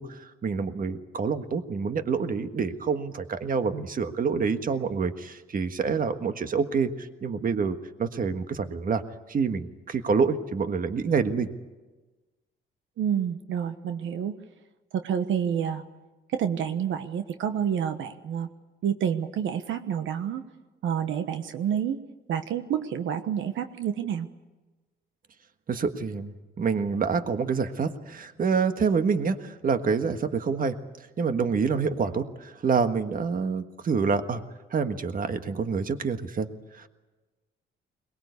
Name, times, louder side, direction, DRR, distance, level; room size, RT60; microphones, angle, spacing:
voice 1, 0.0-9.0 9.3-11.5 25.7-30.8 31.2-34.4 34.7-36.5 36.7-36.9, right 5 dB, 45° right, 9 dB, 1.6 m, -27 dB
voice 2, 13.0-14.4 14.9-15.8 16.3-18.5 18.8-20.4 20.8-22.0 22.3-24.3, right 8 dB, 75° right, 8 dB, 1.2 m, -28 dB
22.5 x 20.5 x 8.3 m, 1.2 s
cardioid pair, 90°, 20 cm